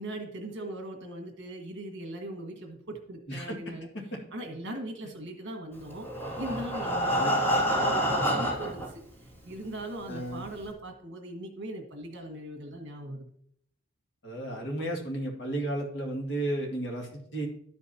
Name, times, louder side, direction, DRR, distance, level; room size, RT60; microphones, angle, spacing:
voice 1, 0.0-3.9 4.3-6.1 6.4-13.3, right 1 dB, 60° right, 3 dB, 1.6 m, -40 dB
Breathing, 5.9-8.9 9.6-9.7 10.1-10.2 10.6-10.7, equal, 10° left, 2.2 m, -27 dB
voice 2, 10.1-10.4 14.2-17.5, right 1 dB, 60° left, -1 dB, 2.0 m, -33 dB
13.0 x 5.2 x 2.8 m, 0.68 s
head